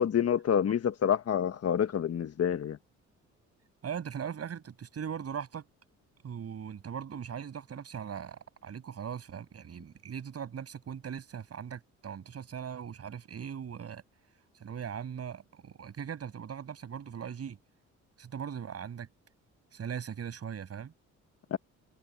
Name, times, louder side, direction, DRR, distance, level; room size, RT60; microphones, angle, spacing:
voice 1, 0.0-2.8 21.5-21.6, left 8 dB, 55° left, 1.5 m, -27 dB
voice 2, 3.8-5.7 6.2-14.0 14.6-17.6 18.2-19.1 19.7-20.9, right 8 dB, 55° right, 7.8 m, -39 dB
cardioid pair, 90°, 30 cm